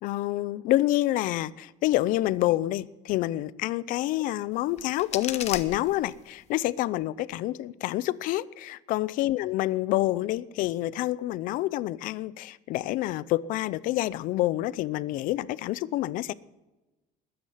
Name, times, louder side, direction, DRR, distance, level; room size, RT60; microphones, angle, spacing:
voice 1, 0.0-16.3, left 15 dB, 65° left, 0.6 m, -28 dB
sound 1, 4.5-6.5, left 10 dB, 45° left, 1.2 m, -37 dB
21.0 x 9.7 x 5.7 m
cardioid pair, 130°, 15 cm